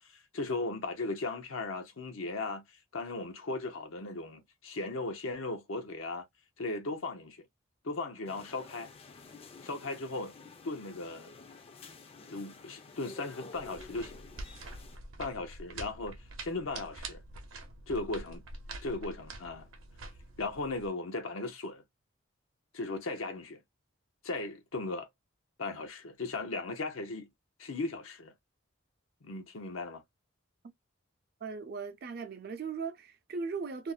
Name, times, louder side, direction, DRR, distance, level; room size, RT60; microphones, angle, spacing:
voice 1, 0.0-2.6 2.9-6.3 6.6-7.4 7.8-8.9 9.6-10.3 10.6-11.3 12.2-14.2 15.2-17.2 17.9-18.4 18.8-19.7 20.4-21.8 22.7-23.6 24.2-25.1 25.6-27.3 27.6-28.3 29.2-30.0, left 3 dB, 90° left, 0.8 m, -37 dB
sound 1, 8.3-15.0, left 4 dB, 30° left, 0.4 m, -51 dB
sound 2, 13.5-20.9, right 2 dB, 80° right, 0.7 m, -46 dB
voice 2, 31.4-33.9, right 5 dB, 50° right, 0.5 m, -38 dB
2.5 x 2.1 x 2.3 m
head